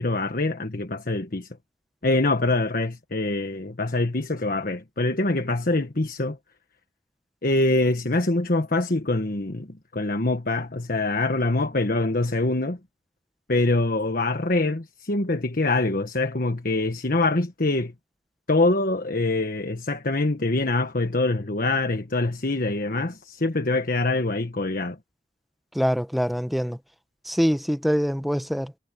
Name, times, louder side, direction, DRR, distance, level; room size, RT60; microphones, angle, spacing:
voice 1, 0.0-1.5 2.0-6.4 7.4-12.8 13.5-17.9 18.5-25.0, left 2 dB, 55° left, 1.4 m, -24 dB
voice 2, 25.7-26.8 27.2-28.7, equal, ahead, 1.0 m, -24 dB
head